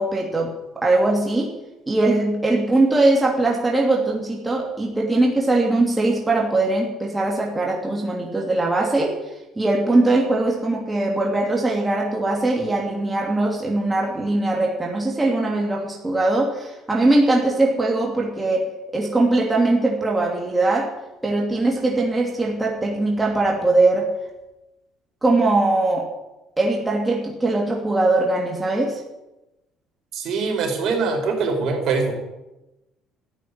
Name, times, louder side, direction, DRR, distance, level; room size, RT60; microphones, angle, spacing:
voice 1, 0.0-1.5 1.9-9.1 9.6-20.9 21.2-24.1 25.2-26.1 26.6-29.0, right 2 dB, 15° right, -1 dB, 2.9 m, -21 dB
voice 2, 30.1-32.1, right 4 dB, 60° right, 2 dB, 5.0 m, -23 dB
13.5 x 9.5 x 9.9 m, 0.98 s
cardioid pair, 105°, 0 cm